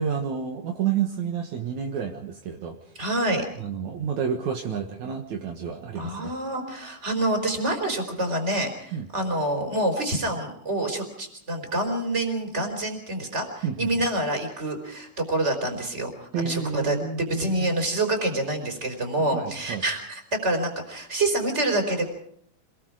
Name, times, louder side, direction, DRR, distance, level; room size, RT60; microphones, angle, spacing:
voice 1, 0.0-2.8 3.6-6.3 8.9-9.1 13.6-13.9 16.3-17.7 19.3-19.8, right 7 dB, 65° right, 3 dB, 2.7 m, -30 dB
voice 2, 2.9-3.5 5.9-22.1, right 1 dB, 20° right, 5 dB, 4.4 m, -27 dB
26.5 x 20.5 x 4.9 m, 0.69 s
omnidirectional pair, 3.6 m